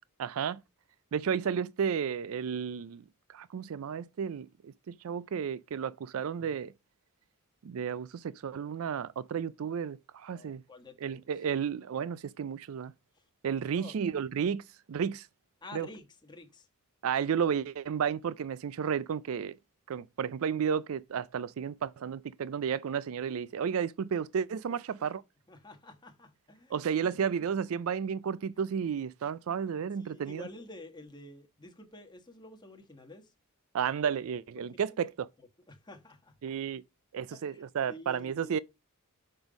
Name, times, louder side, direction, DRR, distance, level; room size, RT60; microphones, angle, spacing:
voice 1, 0.2-0.6 1.1-3.0 3.3-6.7 7.6-10.6 11.0-12.9 13.4-14.6 14.9-15.3 15.7-15.9 17.0-19.6 19.9-25.2 26.7-30.5 33.7-35.3 36.4-36.8 37.1-38.6, right 7 dB, 70° right, 0.4 m, -32 dB
voice 2, 10.3-11.2 13.1-13.2 13.6-14.0 15.6-16.7 24.7-25.1 25.5-27.2 30.0-33.3 34.6-35.0 35.7-36.4 37.3-38.6, left 2 dB, 20° left, 1.2 m, -50 dB
6.2 x 5.4 x 5.0 m
head